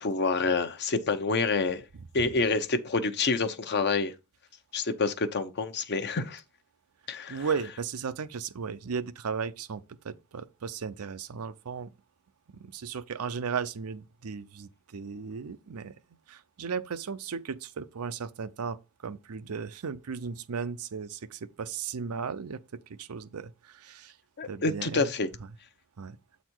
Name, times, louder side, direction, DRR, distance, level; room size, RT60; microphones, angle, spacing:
voice 1, 0.0-1.8 2.1-4.1 4.7-6.4 7.1-7.4 24.4-25.3, left 4 dB, 50° left, 0.8 m, -27 dB
voice 2, 7.3-11.9 12.5-15.9 16.3-24.2 24.4-25.1 26.0-26.2, right 6 dB, 90° right, 0.6 m, -36 dB
7.8 x 4.1 x 4.5 m
head